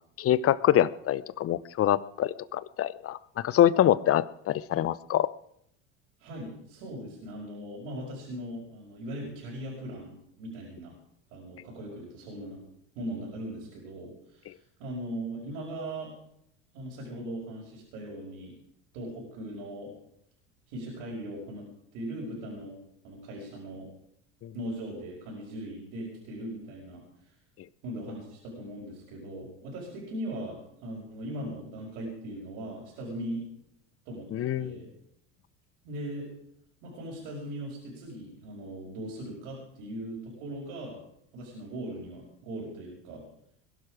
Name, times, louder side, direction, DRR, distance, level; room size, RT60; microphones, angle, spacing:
voice 1, 0.2-5.3 24.4-24.5 34.3-34.8, left 11 dB, 40° left, 18 dB, 0.8 m, -25 dB
voice 2, 6.2-10.9 11.3-12.6 13.0-16.1 16.7-18.5 18.9-19.9 20.7-22.7 23.0-23.9 24.5-27.4 27.8-33.4 34.1-34.9 35.8-36.3 36.8-41.0 41.3-43.2, right 1 dB, 65° right, -3 dB, 5.6 m, -39 dB
21.5 x 12.0 x 5.0 m, 0.73 s
hypercardioid pair, 75°, 37 cm